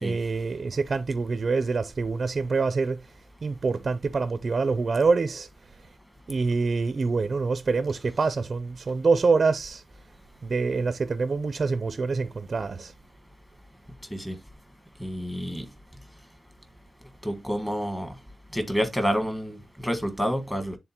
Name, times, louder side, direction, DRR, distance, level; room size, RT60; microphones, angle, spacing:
voice 1, 0.0-3.1 3.4-5.5 6.3-9.8 10.4-12.9, right 4 dB, 50° right, 0.4 m, -25 dB
voice 2, 15.0-15.7 17.2-18.1 18.5-20.8, equal, 5° left, 1.5 m, -28 dB
10.0 x 3.8 x 2.9 m
wide cardioid pair, 120°, 0 cm